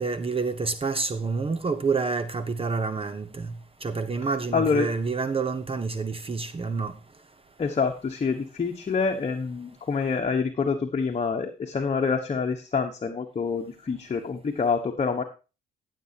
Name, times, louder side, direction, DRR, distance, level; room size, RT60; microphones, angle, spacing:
voice 1, 0.0-3.5 3.8-6.9, right 4 dB, 30° right, 0.8 m, -28 dB
voice 2, 4.5-4.9 7.6-15.2, left 5 dB, 35° left, 1.3 m, -26 dB
15.0 x 7.6 x 2.9 m
cardioid pair, 90°, 20 cm